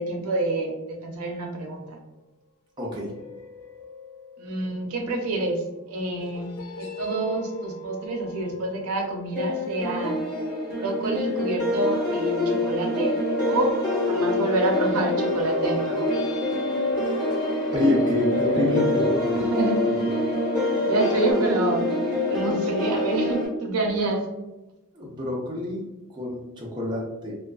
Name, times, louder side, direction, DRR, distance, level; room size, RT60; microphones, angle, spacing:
voice 1, 0.0-2.0 4.4-10.2 10.8-13.2 13.5-13.8 14.0-16.1 19.3-20.0 20.8-21.9 22.3-24.3, right 2 dB, 90° right, 2 dB, 0.5 m, -27 dB
voice 2, 2.8-3.1 17.0-17.4 17.7-19.5 24.9-27.3, left 2 dB, 20° right, -4 dB, 0.5 m, -27 dB
sound 1, 3.0-5.6 6.2-11.7 12.0-21.3, left 2 dB, 80° left, 0.3 m, -33 dB
sound 2, 9.4-23.5, left 1 dB, 30° left, 1.2 m, -26 dB
2.4 x 2.3 x 2.3 m, 1.0 s
head